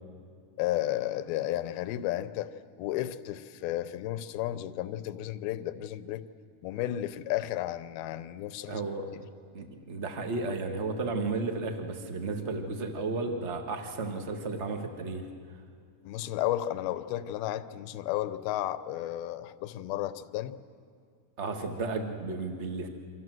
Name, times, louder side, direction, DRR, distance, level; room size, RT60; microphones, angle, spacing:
voice 1, 0.6-2.5 2.8-6.2 6.6-8.8 16.0-20.5, left 13 dB, 90° left, 13 dB, 2.7 m, -33 dB
voice 2, 8.7-9.1 9.5-15.2 21.4-22.9, right 3 dB, 50° right, 4 dB, 0.8 m, -33 dB
28.0 x 25.0 x 7.7 m, 2.2 s
omnidirectional pair, 4.2 m